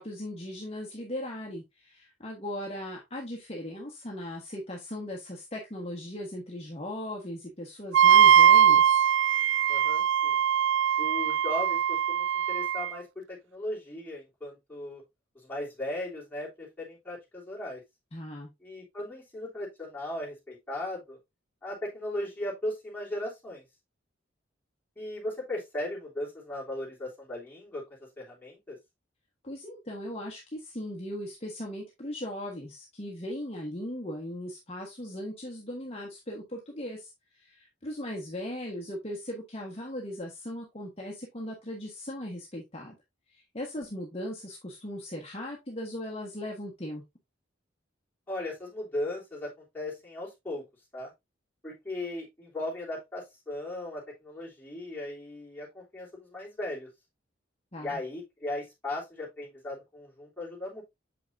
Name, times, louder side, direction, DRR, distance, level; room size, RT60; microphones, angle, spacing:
voice 1, 0.0-9.0 18.1-18.5 29.4-43.0 43.3-47.0 57.7-58.0, left 1 dB, 30° left, 1.3 m, -38 dB
Wind instrument woodwind instrument, 7.9-12.9, right 9 dB, 70° right, 0.3 m, -21 dB
voice 2, 9.7-10.4 11.0-15.0 15.3-17.8 18.6-21.2 21.6-23.6 25.0-27.8 28.2-28.8 48.3-50.6 50.9-51.1 51.6-56.9 57.8-60.8, left 1 dB, 10° left, 3.1 m, -37 dB
7.1 x 5.8 x 2.6 m
head